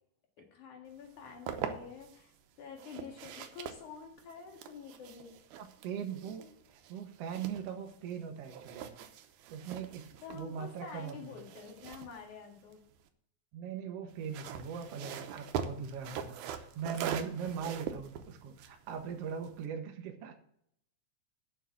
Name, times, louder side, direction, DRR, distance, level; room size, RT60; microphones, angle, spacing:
voice 1, 0.4-5.3 10.2-12.8, left 6 dB, 90° left, 1 dB, 3.4 m, -48 dB
sound 1, 1.0-2.2 2.8-8.2 8.4-13.1 14.1-19.7, right 8 dB, 90° right, 2.3 m, -43 dB
voice 2, 5.6-8.9 9.5-11.3 13.5-20.4, right 7 dB, 65° right, 4 dB, 2.0 m, -40 dB
7.3 x 6.9 x 7.6 m, 0.72 s
omnidirectional pair, 3.4 m